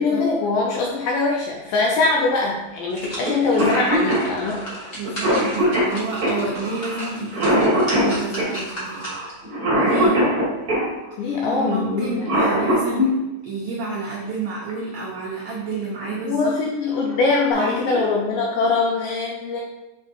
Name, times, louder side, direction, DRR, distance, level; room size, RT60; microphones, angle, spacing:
voice 1, 0.0-5.0 11.2-12.3 16.2-19.6, left 3 dB, 80° left, -1 dB, 2.0 m, -22 dB
sound 1, 2.0-2.1 2.6-9.4 9.9-10.0, equal, 40° left, 1.1 m, -35 dB
Cough, 3.2-3.3 3.6-10.9 12.0-13.1 14.7-14.8 15.8-16.1 16.6-16.7 17.0-17.5, equal, 35° right, 1.6 m, -21 dB
voice 2, 4.9-9.1 9.8-10.3 11.2-13.1 13.4-16.5 17.6-18.0, right 3 dB, 85° right, -5 dB, 1.5 m, -29 dB
7.0 x 5.6 x 2.6 m, 1.0 s
omnidirectional pair, 4.6 m